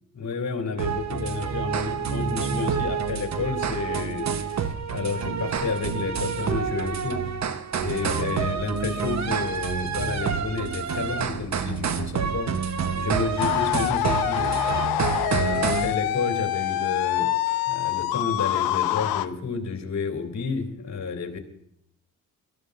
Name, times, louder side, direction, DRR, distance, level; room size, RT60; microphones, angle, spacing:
voice 1, 0.2-7.3 7.8-12.6 12.9-14.8 15.2-17.3 17.7-21.4, left 5 dB, 50° left, 4 dB, 2.5 m, -31 dB
sound 1, 0.8-15.9, right 6 dB, 50° right, 1.0 m, -28 dB
sound 2, 13.4-19.3, left 14 dB, 90° left, 0.6 m, -25 dB
20.5 x 13.5 x 2.5 m, 0.73 s
cardioid pair, 75°, 35 cm